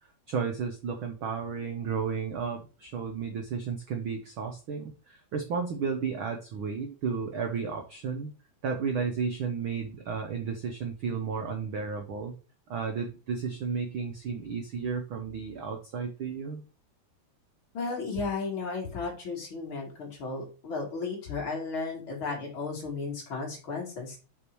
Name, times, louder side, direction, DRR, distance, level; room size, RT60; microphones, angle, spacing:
voice 1, 0.3-8.3 8.6-12.3 12.7-16.6, right 6 dB, 75° right, 4 dB, 1.1 m, -33 dB
voice 2, 17.7-24.2, left 4 dB, 40° left, -1 dB, 2.9 m, -34 dB
6.7 x 6.0 x 4.7 m, 0.35 s
omnidirectional pair, 3.7 m